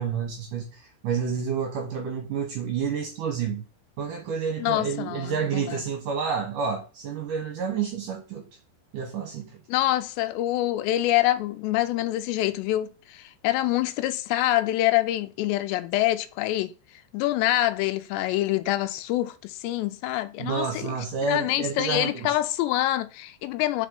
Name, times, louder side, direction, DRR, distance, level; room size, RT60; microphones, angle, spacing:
voice 1, 0.0-3.6 4.0-8.5 8.9-9.6 20.4-22.3, right 6 dB, 70° right, 2.1 m, -29 dB
voice 2, 4.6-5.8 9.7-16.7 17.1-20.8 21.3-23.9, left 15 dB, 85° left, 2.7 m, -26 dB
5.1 x 5.1 x 5.4 m
omnidirectional pair, 5.0 m